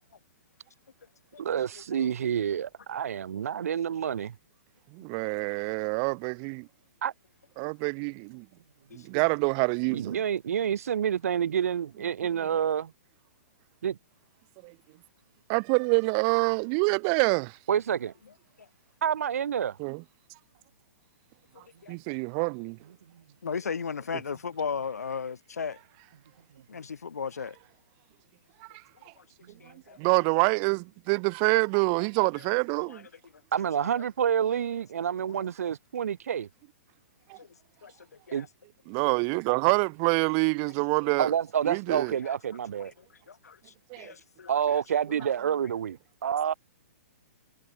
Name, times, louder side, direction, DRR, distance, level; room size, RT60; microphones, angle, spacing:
voice 1, 1.4-4.3 7.0-7.1 9.9-12.9 13.8-14.0 17.7-18.1 19.0-19.8 33.5-36.5 38.3-38.5 41.2-42.9 44.5-46.5, right 8 dB, 70° right, 2.8 m, -28 dB
voice 2, 4.9-6.7 7.6-8.4 8.9-10.2 14.6-14.7 15.5-17.6 19.8-20.0 21.9-22.8 30.0-33.1 37.3-37.4 38.9-41.3 41.7-42.1 43.9-44.1, right 40 dB or more, 35° right, 0.9 m, -26 dB
voice 3, 8.9-9.2 18.6-18.7 21.8-21.9 23.4-25.8 26.7-27.6 29.2-29.3 29.6-30.0 32.4-32.5 32.7-33.0 33.8-33.9 35.4-35.5 37.4-37.5 37.8-37.9 38.3-38.5 42.2-42.4 42.8-42.9 43.3-44.8, left 6 dB, 85° left, 1.2 m, -36 dB
hypercardioid pair, 125°, 8 cm